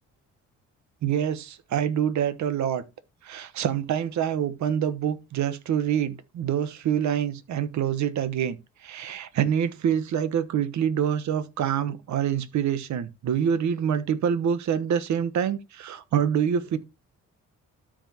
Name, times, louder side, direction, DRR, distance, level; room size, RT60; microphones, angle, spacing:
voice 1, 1.0-2.8 3.2-16.8, right 8 dB, 70° right, 1.1 m, -26 dB
13.0 x 5.1 x 2.9 m
cardioid pair, 90°, 30 cm